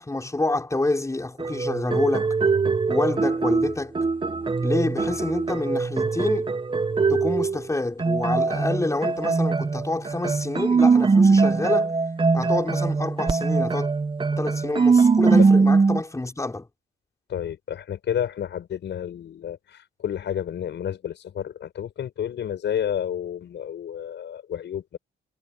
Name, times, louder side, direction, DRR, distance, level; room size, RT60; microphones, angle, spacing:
voice 1, 0.0-2.4 2.9-4.0 4.6-6.5 7.1-11.9 12.3-13.9 14.3-16.7, left 2 dB, 15° left, 5.6 m, -27 dB
sound 1, 1.4-7.6 8.0-16.0, right 4 dB, 25° right, 1.1 m, -21 dB
voice 2, 17.3-25.0, left 9 dB, 65° left, 6.8 m, -30 dB
cardioid pair, 90°, 20 cm